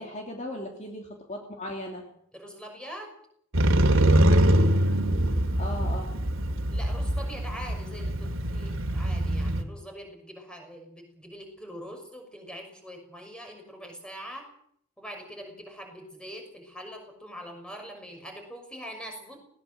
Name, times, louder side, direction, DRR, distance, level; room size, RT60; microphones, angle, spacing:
voice 1, 0.0-2.1 5.6-6.1, left 1 dB, 35° left, 1 dB, 2.9 m, -37 dB
voice 2, 2.3-3.1 6.7-14.5 15.0-19.4, equal, 5° left, 3 dB, 6.0 m, -43 dB
Motorcycle, 3.5-9.6, right 1 dB, 70° right, 2.5 m, -23 dB
20.0 x 19.0 x 7.7 m, 0.67 s
head